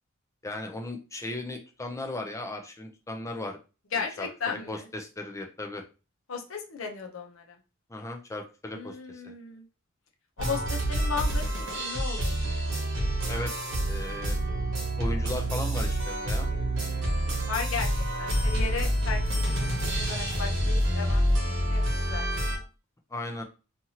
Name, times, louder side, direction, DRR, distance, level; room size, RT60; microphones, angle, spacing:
voice 1, 0.4-3.6 3.9-5.8 7.9-9.3 13.3-13.5 13.9-14.4 15.0-16.5 23.1-23.4, left 1 dB, 15° left, 4 dB, 0.5 m, -37 dB
voice 2, 3.9-4.9 6.3-7.6 8.7-9.6 10.4-11.5 11.7-12.4 17.5-17.9 18.2-22.2, left 5 dB, 80° left, 2 dB, 0.7 m, -35 dB
sound 1, 10.4-22.6, right 1 dB, 65° right, 1.0 m, -27 dB
2.8 x 2.5 x 2.8 m, 0.32 s
head